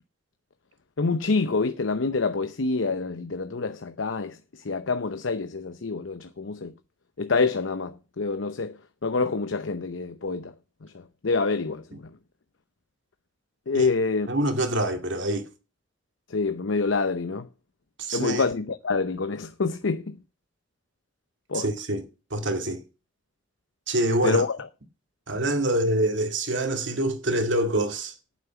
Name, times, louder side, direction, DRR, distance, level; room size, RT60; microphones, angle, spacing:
voice 1, 1.0-6.7 7.2-8.8 9.0-10.5 10.8-10.9 11.2-12.1 13.7-14.3 16.3-17.5 18.1-20.2 21.5-21.7 24.2-24.6, left 4 dB, 90° left, 0.8 m, -27 dB
voice 2, 14.3-15.5 18.0-18.4 21.5-22.1 22.3-22.8 23.9-24.4 25.3-28.1, right 1 dB, 70° right, 2.1 m, -25 dB
9.0 x 7.3 x 7.2 m
head